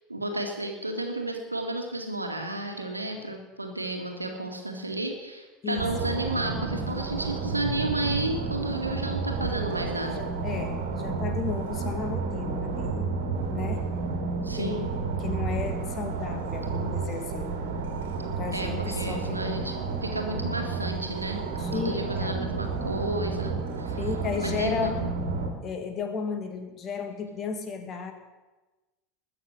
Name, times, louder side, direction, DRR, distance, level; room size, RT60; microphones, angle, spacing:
voice 1, 0.1-10.2 14.4-14.9 18.5-21.4 21.7-24.0 24.4-25.1, right 1 dB, 85° right, 3 dB, 2.2 m, -32 dB
voice 2, 5.6-6.1 10.1-13.1 13.5-13.9 14.6-14.8 15.2-17.6 18.3-19.6 21.6-22.5 24.0-25.0 25.6-28.1, left 6 dB, 30° left, 6 dB, 2.2 m, -34 dB
sound 1, 5.8-25.5, right 4 dB, 60° right, 2.6 m, -31 dB
20.5 x 7.2 x 8.2 m, 1.2 s
figure-of-eight pair, 75°, 0 cm